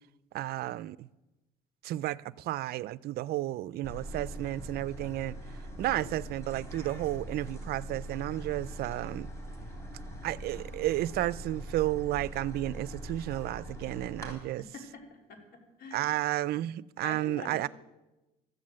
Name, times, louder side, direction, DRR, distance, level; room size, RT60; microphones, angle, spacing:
voice 1, 0.3-1.1 1.8-5.4 5.8-9.3 10.2-14.7 15.9-17.7, right 15 dB, 65° right, 0.4 m, -32 dB
sound 1, 3.8-14.3, right 1 dB, 15° left, 3.8 m, -42 dB
voice 2, 14.6-16.1 17.0-17.7, left 4 dB, 75° left, 3.4 m, -46 dB
13.5 x 9.5 x 7.5 m
cardioid pair, 110°, 17 cm